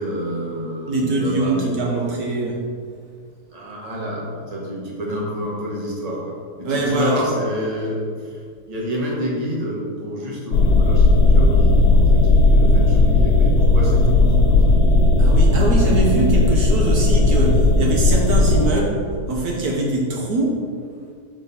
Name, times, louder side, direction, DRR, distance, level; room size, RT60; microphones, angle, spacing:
voice 1, 0.0-1.8 3.5-8.4 8.7-14.7, equal, 25° right, -4 dB, 1.3 m, -28 dB
voice 2, 0.9-2.6 6.6-7.2 15.2-20.7, right 2 dB, 70° right, -1 dB, 1.3 m, -23 dB
sound 1, 10.5-18.7, left 2 dB, 65° left, 1.3 m, -15 dB
6.2 x 5.7 x 4.1 m, 2.1 s
omnidirectional pair, 1.8 m